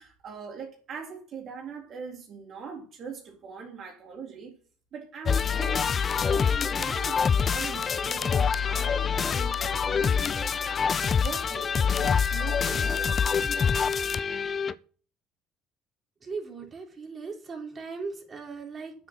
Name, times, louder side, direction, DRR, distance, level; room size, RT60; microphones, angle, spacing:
voice 1, 0.0-4.6 4.9-5.9 6.2-13.6, right 5 dB, 55° right, 3.7 m, -42 dB
sound 1, 5.3-14.7, left 6 dB, 40° left, 0.7 m, -26 dB
voice 2, 16.2-18.9, right 4 dB, 35° right, 4.4 m, -38 dB
9.7 x 7.8 x 7.7 m
hypercardioid pair, 65°, 0 cm